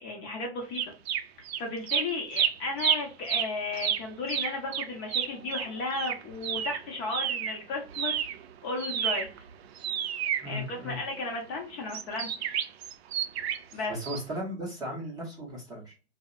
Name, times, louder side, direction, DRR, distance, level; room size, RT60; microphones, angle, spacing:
voice 1, 0.0-0.8 1.6-8.2 8.6-9.3 10.4-12.6 13.7-13.9, left 3 dB, 30° left, 1 dB, 0.7 m, -34 dB
sound 1, 0.8-1.6 1.9-7.6 7.9-11.2 11.9-13.7 14.0-14.2, right 9 dB, 70° right, 0.5 m, -30 dB
voice 2, 10.4-11.0 13.9-15.9, equal, 10° right, -4 dB, 0.6 m, -36 dB
2.6 x 2.1 x 2.4 m, 0.32 s
hypercardioid pair, 135°, 33 cm